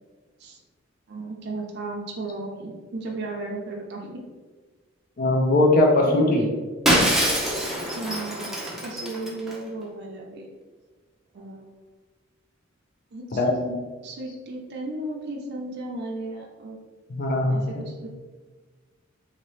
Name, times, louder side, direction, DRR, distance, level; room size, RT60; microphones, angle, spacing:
voice 1, 1.1-4.2 6.0-6.6 7.9-10.5 11.3-11.7 13.1-16.8 17.5-18.1, right 2 dB, 60° right, -1 dB, 0.5 m, -35 dB
voice 2, 5.2-6.5 13.3-13.6 17.1-17.6, left 2 dB, 45° left, 1 dB, 0.5 m, -20 dB
Shatter, 6.9-9.5, equal, ahead, 0.6 m, -24 dB
3.8 x 2.8 x 3.1 m, 1.4 s
head